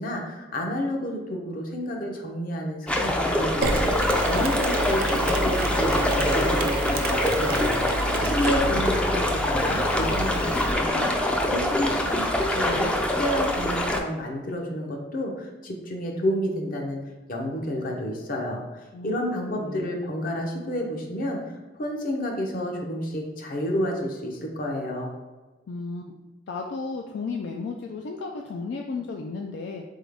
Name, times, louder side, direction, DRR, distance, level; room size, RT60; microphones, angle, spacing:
voice 1, 0.0-3.8 4.2-12.9 13.2-17.0 17.3-25.1, equal, 50° left, 1 dB, 0.8 m, -30 dB
sound 1, 2.9-14.0, left 1 dB, 5° left, 0.4 m, -25 dB
Mechanisms, 3.6-10.7, right 1 dB, 55° right, 0.4 m, -29 dB
voice 2, 19.5-19.9 25.7-26.1 26.5-29.8, left 4 dB, 70° left, 2 dB, 0.4 m, -34 dB
4.1 x 3.7 x 3.5 m, 1.2 s
head